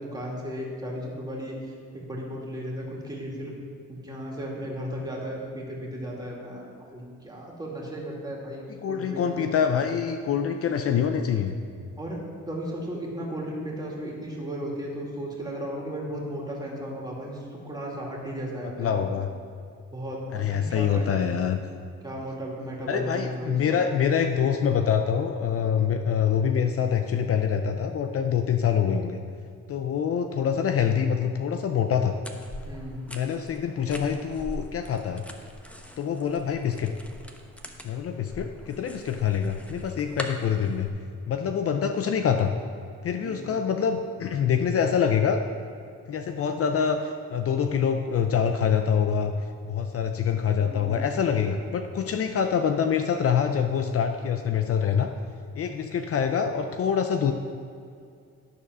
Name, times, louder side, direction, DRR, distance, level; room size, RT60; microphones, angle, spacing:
voice 1, 0.0-3.5 3.9-9.5 12.0-19.1 19.9-20.2 20.5-21.2 22.0-23.8 32.6-33.0 43.2-43.4 50.5-51.1, equal, 15° right, -3 dB, 2.4 m, -35 dB
voice 2, 8.8-11.6 18.8-19.3 20.3-21.6 22.9-29.2 29.7-32.2 33.1-35.2 36.0-36.9 37.8-40.9 41.3-42.5 43.0-45.4 46.1-49.4 49.6-55.1 55.6-57.3, left 7 dB, 50° left, 7 dB, 0.6 m, -25 dB
sound 1, 32.2-40.9, equal, 5° left, 0.9 m, -42 dB
12.0 x 4.1 x 6.2 m, 2.3 s
cardioid pair, 90°, 30 cm